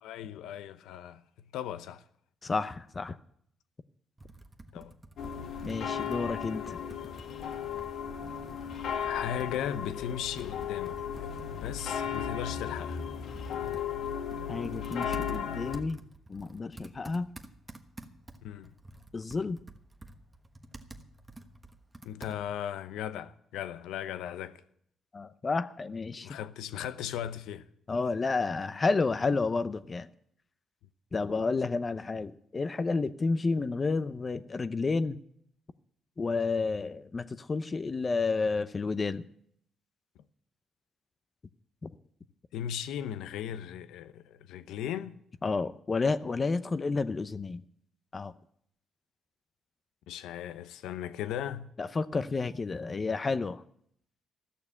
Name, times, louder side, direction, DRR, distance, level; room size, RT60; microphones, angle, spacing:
voice 1, 0.0-1.2 1.5-2.0 4.7-4.9 9.0-13.0 18.4-18.7 22.0-24.6 26.2-27.7 42.5-45.2 50.1-51.7, left 10 dB, 90° left, 0.8 m, -37 dB
voice 2, 2.4-3.2 5.6-6.8 14.5-16.0 16.3-17.3 19.1-19.6 25.1-26.3 27.9-30.1 31.1-35.2 36.2-39.2 41.8-41.9 45.4-47.6 48.1-48.3 51.8-53.6, left 4 dB, 30° left, 0.7 m, -30 dB
Computer keyboard, 4.2-22.7, right 2 dB, 20° right, 1.3 m, -51 dB
sound 1, 5.2-15.8, left 8 dB, 75° left, 1.6 m, -35 dB
14.5 x 6.7 x 9.7 m
cardioid pair, 90°, 0 cm